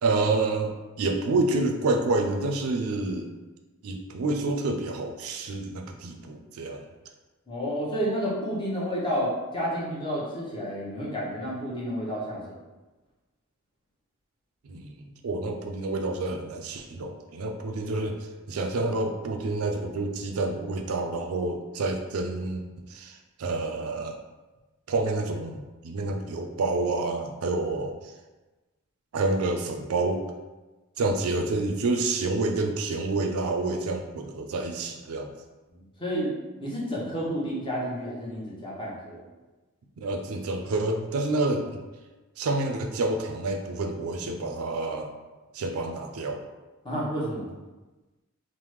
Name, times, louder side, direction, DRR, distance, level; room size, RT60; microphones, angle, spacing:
voice 1, 0.0-0.7 1.0-3.3 3.8-6.9 14.6-18.2 18.5-22.6 22.9-24.2 24.9-27.9 29.1-30.2 31.0-35.3 40.0-41.8 42.4-45.1 45.5-46.4, right 2 dB, 85° right, 4 dB, 0.4 m, -28 dB
voice 2, 7.5-12.6 36.0-36.3 36.6-39.2 46.8-47.5, equal, 25° left, -6 dB, 0.8 m, -30 dB
3.4 x 2.1 x 3.0 m, 1.2 s
head